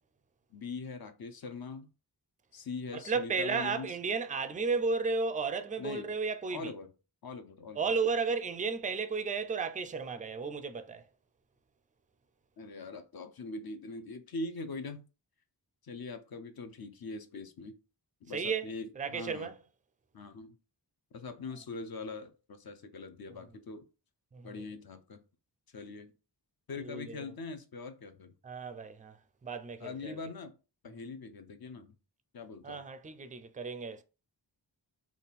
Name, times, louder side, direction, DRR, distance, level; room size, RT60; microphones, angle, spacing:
voice 1, 0.5-1.9 2.5-4.0 5.8-6.1 6.5-6.9 7.2-7.9 12.6-15.0 15.8-17.8 18.2-19.5 20.1-20.6 21.1-23.8 24.4-25.2 25.7-26.1 26.7-28.3 29.8-30.5 30.8-31.9 32.3-32.8, left 3 dB, 55° left, 0.6 m, -42 dB
voice 2, 2.9-6.7 7.8-11.1 18.3-18.7 19.0-19.6 24.3-24.5 26.8-27.2 28.4-29.2 29.4-30.2 32.6-34.0, right 4 dB, 20° right, 0.4 m, -33 dB
3.5 x 2.4 x 4.1 m
wide cardioid pair, 85°, 44 cm